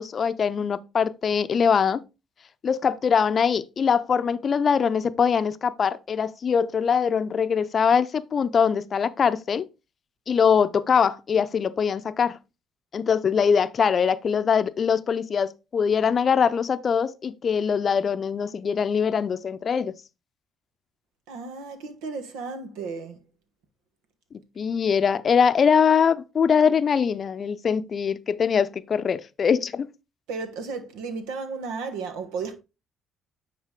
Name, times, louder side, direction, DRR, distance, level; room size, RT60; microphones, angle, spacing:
voice 1, 0.0-2.0 2.6-9.7 10.3-12.4 12.9-19.9 24.6-29.9, left 6 dB, 50° left, 0.6 m, -22 dB
voice 2, 21.3-23.2 30.3-32.6, right 4 dB, 85° right, 1.3 m, -34 dB
9.5 x 4.1 x 3.7 m
supercardioid pair, 65°, 0 cm